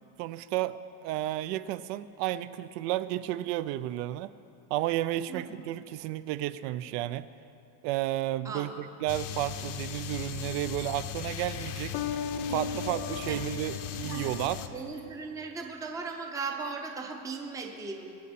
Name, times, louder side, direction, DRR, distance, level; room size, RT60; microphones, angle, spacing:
voice 1, 0.2-4.3 4.7-7.3 7.8-12.0 12.5-14.6, right 14 dB, 80° right, 14 dB, 0.6 m, -32 dB
voice 2, 5.3-5.7 8.4-8.8 12.5-12.8 13.3-13.4 14.0-14.3 14.7-18.0, right 4 dB, 5° right, 2 dB, 0.5 m, -38 dB
sound 1, 9.1-14.7, left 8 dB, 45° left, 0.6 m, -36 dB
22.0 x 8.4 x 4.2 m, 2.6 s
cardioid pair, 180°, 48 cm